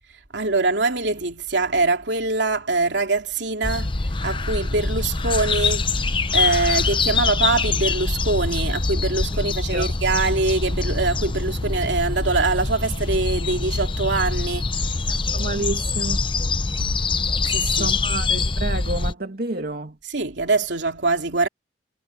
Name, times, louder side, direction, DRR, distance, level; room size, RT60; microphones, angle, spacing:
voice 1, 0.3-3.9 4.2-5.9 6.3-14.8 17.4-18.0 20.0-21.5, right 3 dB, 80° right, 2.9 m, -23 dB
sound 1, 3.6-19.1, left 3 dB, 30° left, 0.8 m, -24 dB
voice 2, 15.3-16.2 17.8-19.9, right 2 dB, 60° right, 2.4 m, -29 dB
head